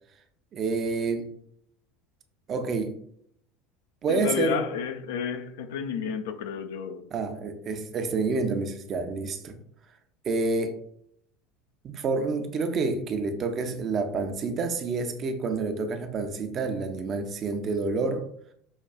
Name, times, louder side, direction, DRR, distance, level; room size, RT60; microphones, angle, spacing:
voice 1, 0.5-1.3 2.5-3.0 4.0-4.6 7.1-9.6 10.2-10.8 11.8-18.3, right 3 dB, 35° right, 0.5 m, -28 dB
voice 2, 4.1-7.1, left 7 dB, 65° left, 0.4 m, -31 dB
5.6 x 2.3 x 2.2 m
figure-of-eight pair, 75°, 0 cm